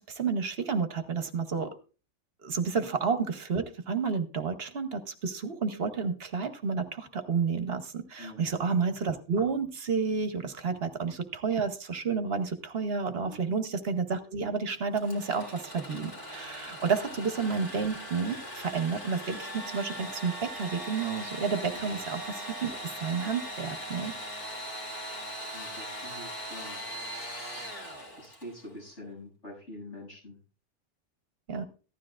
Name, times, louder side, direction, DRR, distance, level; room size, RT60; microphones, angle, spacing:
voice 1, 0.0-1.7 2.4-24.1 31.5-31.6, right 5 dB, 60° right, 9 dB, 1.1 m, -31 dB
voice 2, 8.2-8.5 10.7-10.8 13.2-13.5 18.4-18.5 21.7-21.9 23.2-23.3 25.5-26.8 28.2-30.4, left 1 dB, 80° left, -4 dB, 8.3 m, -45 dB
Engine / Sawing, 14.9-28.6, equal, 25° left, 2.1 m, -40 dB
15.0 x 12.5 x 2.4 m, 0.35 s
omnidirectional pair, 1.2 m